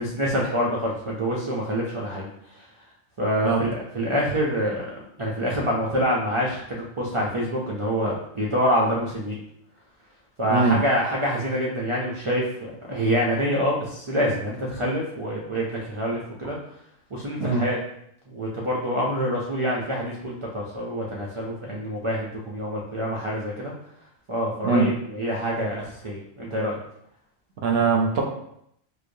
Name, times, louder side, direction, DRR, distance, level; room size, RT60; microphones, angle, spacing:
voice 1, 0.0-2.7 3.2-9.4 10.4-16.6 17.1-17.8 18.3-23.7 24.3-26.8, equal, 50° right, -4 dB, 0.3 m, -26 dB
voice 2, 27.6-28.2, right 4 dB, 65° right, 2 dB, 0.7 m, -21 dB
4.9 x 2.1 x 2.5 m, 0.75 s
omnidirectional pair, 1.2 m